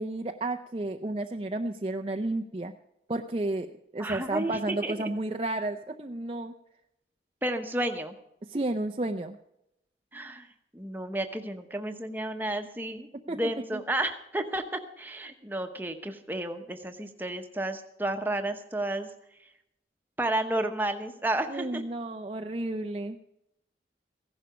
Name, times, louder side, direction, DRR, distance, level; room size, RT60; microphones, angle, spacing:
voice 1, 0.0-2.7 3.1-3.7 3.9-6.5 8.5-9.4 13.3-13.4 21.5-23.2, right 2 dB, 30° right, 4 dB, 0.5 m, -32 dB
voice 2, 4.0-5.1 7.4-8.1 10.1-10.5 10.7-19.1 20.2-21.8, right 1 dB, 10° right, 5 dB, 1.0 m, -32 dB
16.0 x 11.5 x 5.1 m, 0.82 s
head